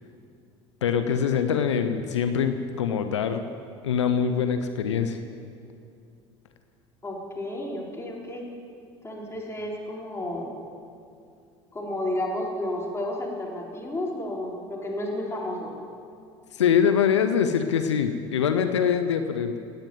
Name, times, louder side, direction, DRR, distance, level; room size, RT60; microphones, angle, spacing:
voice 1, 0.8-3.4 3.8-5.2 16.5-19.6, left 7 dB, 90° left, 9 dB, 0.7 m, -24 dB
voice 2, 7.0-8.5 9.0-10.5 11.7-15.7, left 1 dB, 20° left, -2 dB, 4.1 m, -32 dB
18.5 x 8.9 x 7.8 m, 2.4 s
hypercardioid pair, 75°, 15 cm